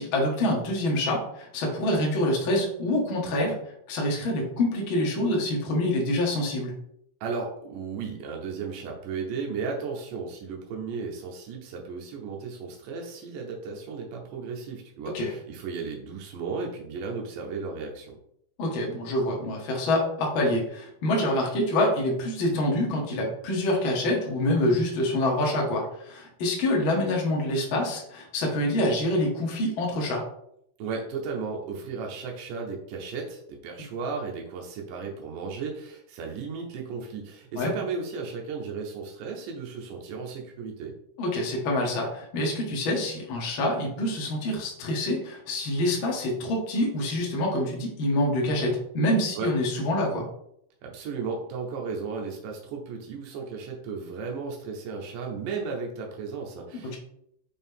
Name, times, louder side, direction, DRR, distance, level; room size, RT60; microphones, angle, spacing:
voice 1, 0.0-3.6 3.9-6.7 15.1-15.3 18.6-30.2 37.6-37.7 41.2-50.3 56.8-57.0, left 1 dB, 50° left, -1 dB, 1.6 m, -26 dB
voice 2, 7.2-18.2 30.8-40.9 49.4-49.5 50.8-57.0, right 5 dB, 90° right, 0 dB, 2.5 m, -35 dB
6.1 x 4.5 x 3.6 m, 0.73 s
omnidirectional pair, 3.7 m